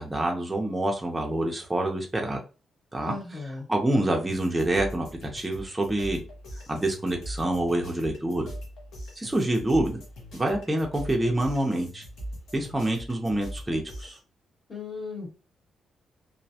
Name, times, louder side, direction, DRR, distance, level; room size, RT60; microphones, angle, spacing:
voice 1, 0.0-2.4 2.9-3.1 3.7-5.1 5.3-6.2 6.7-8.5 9.2-10.0 10.3-12.0 12.5-14.2, right 1 dB, 10° right, 1 dB, 0.4 m, -26 dB
voice 2, 3.0-3.7 14.7-15.3, left 4 dB, 35° left, -2 dB, 1.0 m, -36 dB
sound 1, 4.3-14.2, equal, 90° left, 0.8 m, -41 dB
2.4 x 2.1 x 2.7 m, 0.33 s
wide cardioid pair, 160°, 0 cm